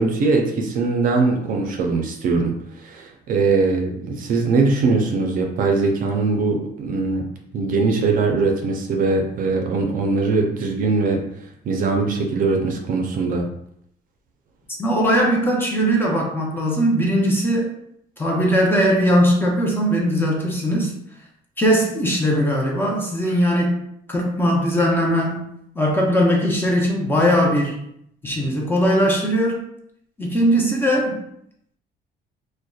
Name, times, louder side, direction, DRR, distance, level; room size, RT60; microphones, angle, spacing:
voice 1, 0.0-7.2 7.5-11.2 11.6-13.5, right 3 dB, 55° right, 2 dB, 0.4 m, -21 dB
voice 2, 14.8-17.7 18.2-20.9 21.6-23.8 24.1-25.4 25.8-27.8 28.2-29.6 30.2-31.2, equal, 15° left, -2 dB, 0.6 m, -19 dB
2.6 x 2.1 x 2.3 m, 0.73 s
cardioid pair, 110°, 17 cm